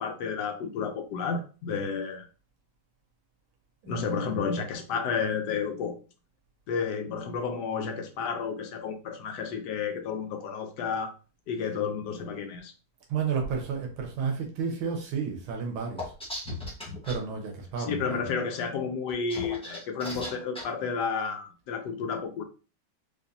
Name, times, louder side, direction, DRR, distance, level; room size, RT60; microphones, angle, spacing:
voice 1, 0.0-2.3 3.9-5.9 6.7-11.1 11.5-12.7 17.8-22.4, left 5 dB, 70° left, 1.1 m, -31 dB
voice 2, 3.8-4.3 13.1-16.1 17.0-18.2, right 6 dB, 85° right, 1.7 m, -32 dB
sound 1, 16.0-17.2 19.1-20.6, left 1 dB, 5° left, 0.6 m, -37 dB
5.0 x 2.6 x 2.7 m
omnidirectional pair, 2.2 m